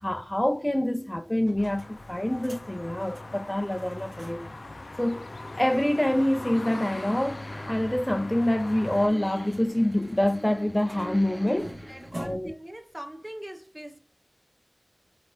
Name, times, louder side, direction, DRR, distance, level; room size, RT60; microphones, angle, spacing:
voice 1, 0.0-4.5 5.0-5.3 5.5-11.8 12.1-12.5, left 1 dB, 15° left, 0.3 m, -26 dB
sound 1, 1.3-4.6 4.9-5.0 5.3-5.4 8.1-12.7, right 1 dB, 80° right, 2.3 m, -47 dB
sound 2, 1.6-9.1, left 2 dB, 90° left, 0.4 m, -41 dB
sound 3, 6.5-12.1, equal, ahead, 1.2 m, -44 dB
voice 2, 11.9-14.0, right 1 dB, 25° right, 0.8 m, -41 dB
4.7 x 3.4 x 2.8 m
wide cardioid pair, 50°, 0 cm